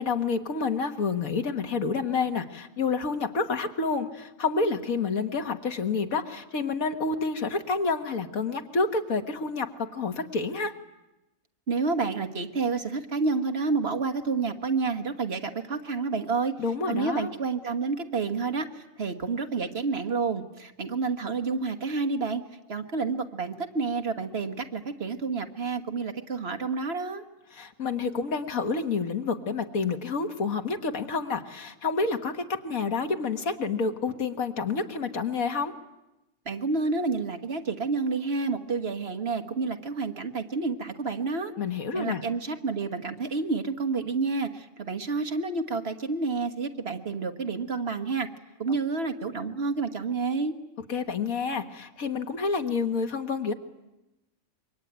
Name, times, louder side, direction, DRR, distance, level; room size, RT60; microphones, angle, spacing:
voice 1, 0.0-10.7 16.6-17.3 27.5-35.7 41.6-42.2 50.9-53.5, left 4 dB, 85° left, 6 dB, 2.0 m, -29 dB
voice 2, 11.7-16.5 16.9-22.4 22.7-27.2 36.4-41.5 41.9-48.3 48.6-50.5, right 4 dB, 50° right, 7 dB, 1.7 m, -29 dB
26.5 x 23.5 x 9.4 m, 0.97 s
omnidirectional pair, 1.4 m